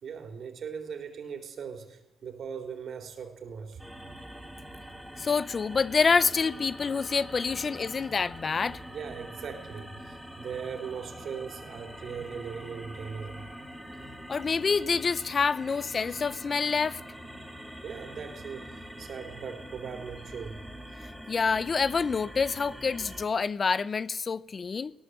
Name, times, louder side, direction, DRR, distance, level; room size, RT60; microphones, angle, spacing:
voice 1, 0.0-3.8 8.9-13.4 17.8-20.6, right 6 dB, 60° right, 3.7 m, -39 dB
sound 1, 3.8-23.3, equal, ahead, 3.8 m, -44 dB
voice 2, 5.2-8.8 14.3-17.0 21.3-24.9, left 5 dB, 40° left, 0.6 m, -27 dB
18.5 x 17.5 x 8.0 m
cardioid pair, 90°, 0 cm